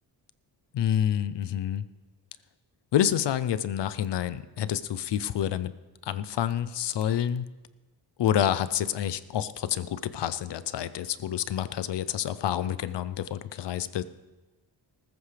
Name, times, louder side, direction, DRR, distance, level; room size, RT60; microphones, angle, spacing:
voice 1, 0.7-1.9 2.9-5.7 6.1-7.5 8.2-14.0, left 10 dB, 70° left, 15 dB, 0.7 m, -28 dB
19.0 x 14.0 x 3.4 m, 1.2 s
wide cardioid pair, 175°, 44 cm